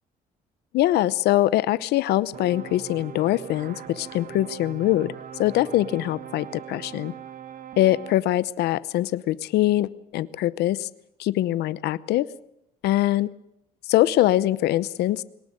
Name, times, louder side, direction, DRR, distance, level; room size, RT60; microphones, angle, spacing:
voice 1, 0.7-5.1 5.4-7.1 7.8-10.9 11.2-12.3 12.8-13.3 13.9-15.2, left 14 dB, 75° left, 17 dB, 0.8 m, -23 dB
sound 1, 2.3-8.2, right 9 dB, 55° right, 1.5 m, -40 dB
22.0 x 19.0 x 7.6 m, 0.78 s
cardioid pair, 110°, 17 cm